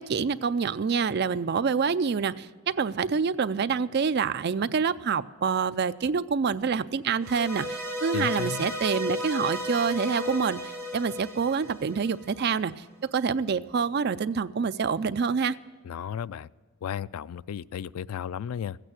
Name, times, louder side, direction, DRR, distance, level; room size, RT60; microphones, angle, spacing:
voice 1, 0.0-10.6 10.9-12.8 13.1-15.6, right 6 dB, 50° right, 13 dB, 0.4 m, -27 dB
sound 1, 7.2-12.5, left 1 dB, 10° left, 1.2 m, -34 dB
voice 2, 8.1-8.7 15.8-16.5 16.8-18.8, left 8 dB, 85° left, 19 dB, 0.3 m, -34 dB
15.5 x 9.0 x 7.7 m, 1.5 s
head